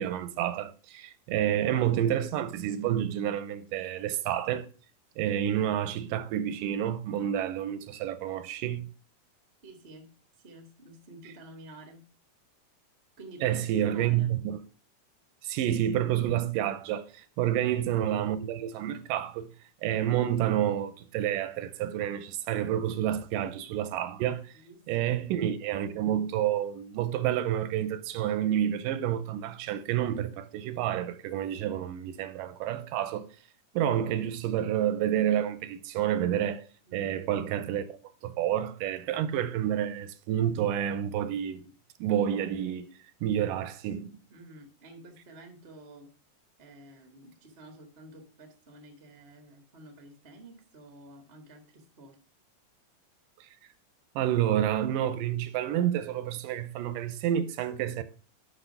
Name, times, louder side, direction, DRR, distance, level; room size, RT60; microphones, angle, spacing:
voice 1, 0.0-4.7 5.2-8.9 13.4-14.6 15.4-19.5 19.8-24.5 24.9-33.3 33.7-36.6 36.9-41.6 42.0-42.9 43.2-44.1 54.2-58.0, right 11 dB, 85° right, 2.2 m, -29 dB
voice 2, 9.6-12.0 13.2-14.4 17.4-17.7 24.4-25.2 36.8-37.3 44.3-46.1 46.6-52.2, right 1 dB, 60° right, 0.6 m, -50 dB
6.2 x 5.7 x 5.4 m
omnidirectional pair, 3.8 m